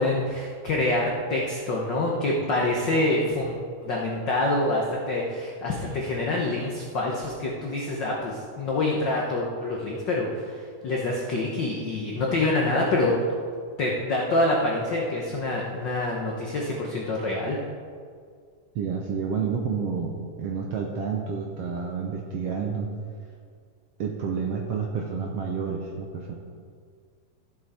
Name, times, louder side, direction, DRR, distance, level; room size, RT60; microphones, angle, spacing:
voice 1, 0.0-3.5 3.8-13.1 13.8-17.6, left 2 dB, 80° left, -2 dB, 1.0 m, -26 dB
voice 2, 18.7-22.9 24.0-26.4, right 6 dB, 70° right, 0 dB, 1.5 m, -29 dB
14.5 x 7.5 x 4.3 m, 2.1 s
omnidirectional pair, 3.8 m